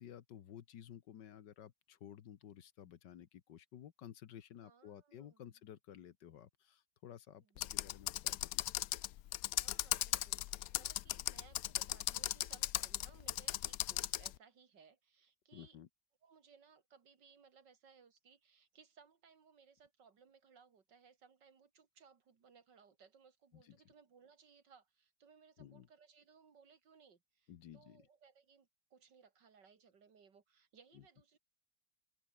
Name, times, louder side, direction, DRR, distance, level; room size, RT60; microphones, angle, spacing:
voice 1, 0.0-8.7 15.5-15.9 23.5-23.8 25.6-25.9 27.5-28.1 30.9-31.0, left 10 dB, 85° left, 1.7 m, -54 dB
voice 2, 4.6-5.6 7.4-7.6 9.6-15.8 16.2-31.4, right 6 dB, 85° right, 2.8 m, -64 dB
Computer keyboard, 7.6-14.3, left 14 dB, 70° left, 1.0 m, -38 dB
open air
omnidirectional pair, 1.9 m